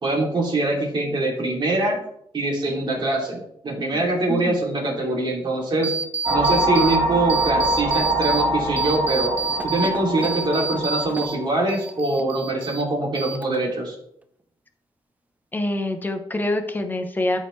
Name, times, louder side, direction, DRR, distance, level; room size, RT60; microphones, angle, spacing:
voice 1, 0.0-2.0 2.3-5.9 6.3-9.3 9.6-14.0, right 2 dB, 50° right, -2 dB, 2.9 m, -23 dB
sound 1, 5.8-7.0 7.3-8.4 8.8-11.4 11.7-12.8 13.2-13.8, right 4 dB, 15° right, 0.6 m, -29 dB
sound 2, 6.2-11.7, right 1 dB, 70° right, 3.5 m, -24 dB
voice 2, 15.5-17.4, left 1 dB, 20° left, 6 dB, 1.0 m, -25 dB
12.5 x 4.9 x 3.3 m, 0.73 s
cardioid pair, 120°, 10 cm